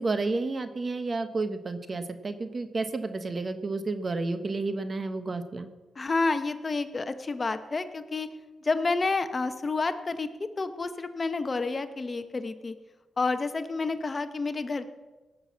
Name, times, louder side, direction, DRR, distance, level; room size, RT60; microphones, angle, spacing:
voice 1, 0.0-5.7, right 3 dB, 40° right, 10 dB, 1.2 m, -31 dB
voice 2, 6.0-8.3 8.6-10.3 10.6-12.7 13.2-14.8, left 3 dB, 35° left, 10 dB, 0.9 m, -29 dB
17.5 x 6.7 x 7.3 m, 1.2 s
cardioid pair, 75°, 0 cm